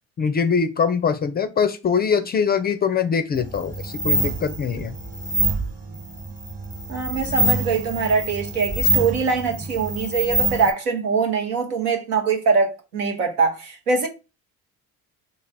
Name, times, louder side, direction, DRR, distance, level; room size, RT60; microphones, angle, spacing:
voice 1, 0.2-5.0, left 6 dB, 25° left, 0.3 m, -22 dB
sound 1, 3.4-10.7, right 1 dB, 20° right, 1.1 m, -25 dB
voice 2, 6.9-14.1, right 5 dB, 90° right, 0.9 m, -23 dB
3.1 x 2.5 x 4.0 m
hypercardioid pair, 60°, 45 cm